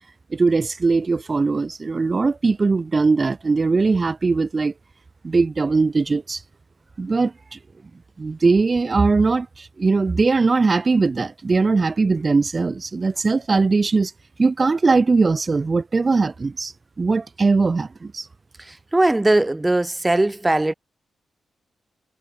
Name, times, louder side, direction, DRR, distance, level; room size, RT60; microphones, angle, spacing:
voice 1, 0.3-4.7 5.2-6.4 7.0-7.6 8.2-14.1 14.4-18.3, right 4 dB, 30° right, 0.8 m, -20 dB
voice 2, 18.9-20.7, right 2 dB, 15° right, 1.1 m, -19 dB
cardioid pair, 110°, 0 cm